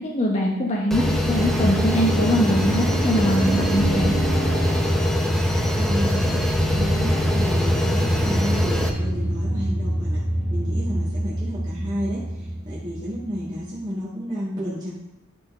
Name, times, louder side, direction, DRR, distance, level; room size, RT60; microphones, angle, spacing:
voice 1, 0.0-4.2, equal, 30° left, -3 dB, 0.9 m, -22 dB
sound 1, 0.9-8.9, left 1 dB, ahead, 0.8 m, -23 dB
sound 2, 1.4-13.6, right 1 dB, 55° right, 2.2 m, -26 dB
voice 2, 5.7-6.3 6.7-10.2 10.5-14.9, equal, 20° right, -10 dB, 1.8 m, -31 dB
12.0 x 4.4 x 3.7 m, 1.0 s
head